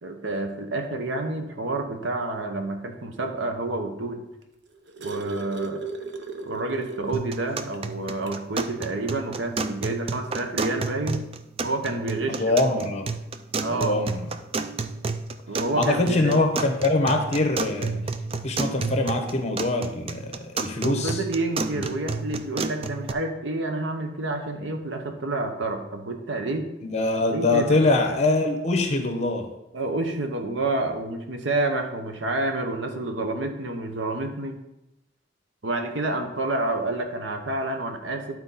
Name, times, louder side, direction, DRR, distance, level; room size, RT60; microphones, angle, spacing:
voice 1, 0.0-4.2 5.0-5.8 6.4-11.2 11.6-12.6 13.6-14.0 15.5-16.4 20.8-26.7 27.3-27.8 29.7-34.6 35.6-38.3, right 2 dB, 85° right, 5 dB, 1.0 m, -29 dB
sound 1, 4.4-7.3 7.7-7.8 8.2-8.4 9.6-9.7, right 4 dB, 65° right, 0.8 m, -36 dB
sound 2, 7.1-23.1, right 4 dB, 30° right, 0.4 m, -31 dB
voice 2, 12.3-13.2 13.7-14.2 15.7-18.0 18.4-21.2 21.7-21.9 26.8-29.5, left 2 dB, 35° left, 5 dB, 1.1 m, -23 dB
11.5 x 4.3 x 4.2 m, 0.91 s
head